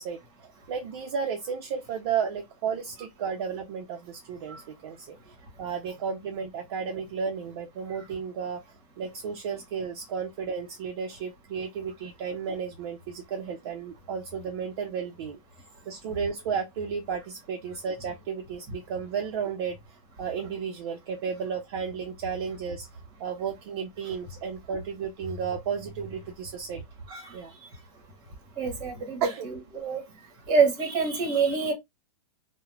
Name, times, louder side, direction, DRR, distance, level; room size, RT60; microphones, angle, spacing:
voice 1, 0.0-8.6 9.0-15.4 15.8-19.8 20.2-22.9 23.2-26.8 27.3-27.5 29.2-29.5, right 6 dB, 45° right, 0.5 m, -33 dB
voice 2, 28.6-30.0 30.5-31.7, right 5 dB, 20° right, 1.0 m, -26 dB
2.3 x 2.0 x 3.1 m
hypercardioid pair, 155°, 19 cm